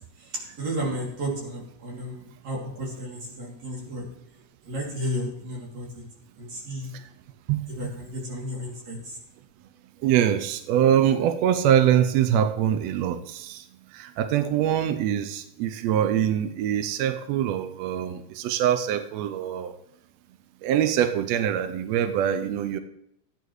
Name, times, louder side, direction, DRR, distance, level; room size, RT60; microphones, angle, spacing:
voice 1, 0.2-4.1 4.6-5.9 6.4-6.9 7.7-9.2, equal, 55° right, -3 dB, 4.0 m, -33 dB
voice 2, 7.5-7.9 10.0-13.6 13.9-19.7 20.6-22.8, right 10 dB, 80° right, 8 dB, 1.5 m, -24 dB
15.0 x 9.4 x 3.2 m, 0.75 s
omnidirectional pair, 3.7 m